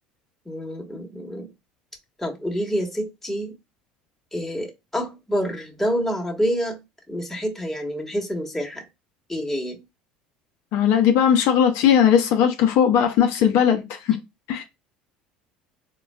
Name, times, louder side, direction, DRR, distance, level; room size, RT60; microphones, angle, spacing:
voice 1, 0.5-1.5 2.2-3.5 4.3-6.8 7.1-8.8 9.3-9.8, equal, 5° left, 1.1 m, -27 dB
voice 2, 10.7-14.2 14.5-14.6, left 8 dB, 65° left, 0.6 m, -18 dB
3.8 x 2.2 x 2.2 m
hypercardioid pair, 80°, 4 cm